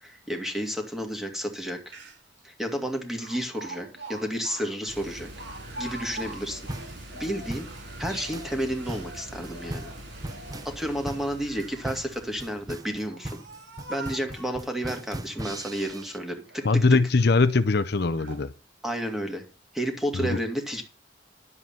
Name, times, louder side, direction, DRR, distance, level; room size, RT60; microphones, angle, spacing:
voice 1, 0.0-1.9 2.4-5.3 5.8-6.6 7.1-7.7 8.0-9.9 10.6-13.3 13.9-16.7 18.8-19.4 19.7-20.8, equal, ahead, 2.2 m, -31 dB
Speech, 1.6-1.7 1.9-2.4 3.2-7.0 7.5-9.1 9.7-10.5 11.4-12.0 12.7-14.7 15.3-16.1 16.5-17.0 17.5-17.6 18.2-18.5 19.0-19.2, right 2 dB, 80° right, 3.2 m, -44 dB
sound 1, 4.9-13.0, right 1 dB, 60° right, 6.9 m, -43 dB
sound 2, 6.7-16.2, right 1 dB, 20° right, 0.6 m, -39 dB
voice 2, 16.6-18.5 20.1-20.4, left 3 dB, 60° left, 0.6 m, -21 dB
11.0 x 7.7 x 5.7 m
head